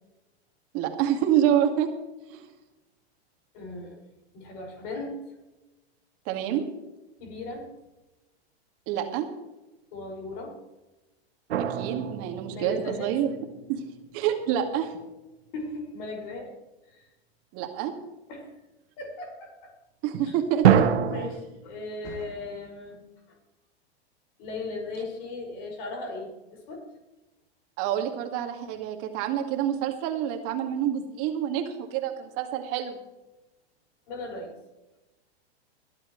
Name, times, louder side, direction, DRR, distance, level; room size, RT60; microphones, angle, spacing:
voice 1, 0.7-1.9 2.3-2.5 6.3-6.6 8.9-9.3 11.7-13.3 13.7-13.8 14.1-14.9 17.5-17.9 20.0-20.9 27.8-33.0, right 10 dB, 45° right, 4 dB, 2.2 m, -27 dB
voice 2, 3.5-4.0 4.3-5.2 7.2-7.7 9.9-10.6 12.5-13.2 15.5-16.5 16.9-17.1 18.3-18.5 19.0-19.7 20.3-20.4 21.1-23.0 24.4-26.9 34.1-34.5, left 2 dB, 55° left, 1 dB, 5.9 m, -37 dB
sound 1, 11.5-13.6 20.6-21.3, right 9 dB, 75° right, 1.4 m, -24 dB
22.0 x 11.5 x 3.2 m, 1.0 s
hypercardioid pair, 110°, 32 cm